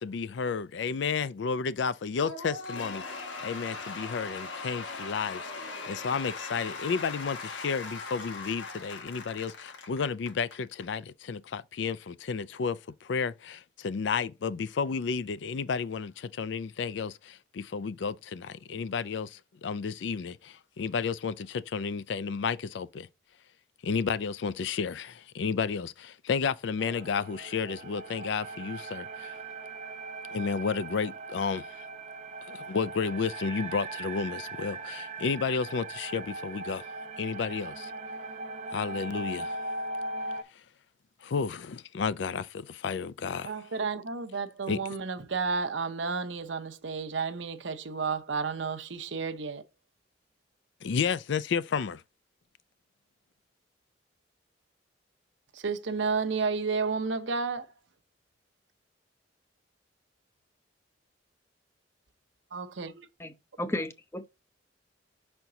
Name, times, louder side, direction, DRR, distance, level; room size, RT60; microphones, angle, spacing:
voice 1, 0.0-23.1 23.8-29.4 30.3-31.8 32.5-37.9 38.7-39.6 41.2-43.5 44.7-44.8 50.8-52.0, left 5 dB, 70° left, 0.4 m, -32 dB
Cheering / Applause / Crowd, 2.2-10.9, left 3 dB, 90° left, 1.2 m, -40 dB
sound 1, 26.8-40.4, right 2 dB, 35° right, 0.7 m, -39 dB
voice 2, 43.4-49.6 55.5-57.7 62.5-63.1, right 4 dB, 75° right, 0.7 m, -32 dB
voice 3, 63.2-64.3, left 1 dB, 15° left, 0.6 m, -34 dB
5.7 x 4.4 x 3.8 m
head